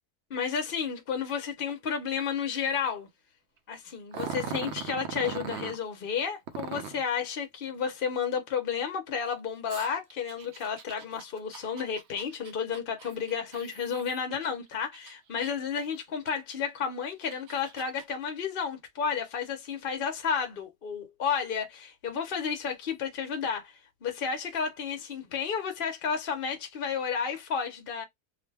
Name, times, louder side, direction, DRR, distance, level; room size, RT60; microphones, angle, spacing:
voice 1, 0.3-3.1 3.7-23.7 24.0-28.0, left 6 dB, 55° left, 0.6 m, -32 dB
Growling, 4.1-5.8 6.5-7.1 9.7-14.5 14.9-15.7 16.3-16.4 17.0-18.0, right 7 dB, 70° right, 0.6 m, -40 dB
2.5 x 2.1 x 3.3 m
omnidirectional pair, 1.6 m